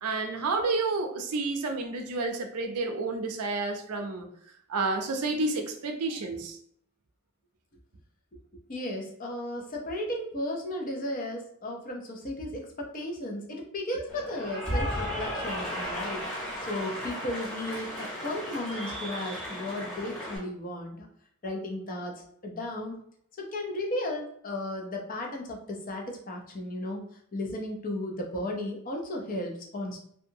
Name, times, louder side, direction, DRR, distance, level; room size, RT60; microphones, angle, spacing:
voice 1, 0.0-4.3 4.7-6.6, right 3 dB, 80° right, 4 dB, 0.5 m, -30 dB
voice 2, 8.5-21.1 21.4-23.0 23.4-27.0 27.3-30.0, left 1 dB, 40° left, 1 dB, 0.5 m, -35 dB
Cheering / Applause, 14.1-20.4, equal, 5° left, 0.9 m, -35 dB
2.7 x 2.3 x 2.7 m, 0.66 s
head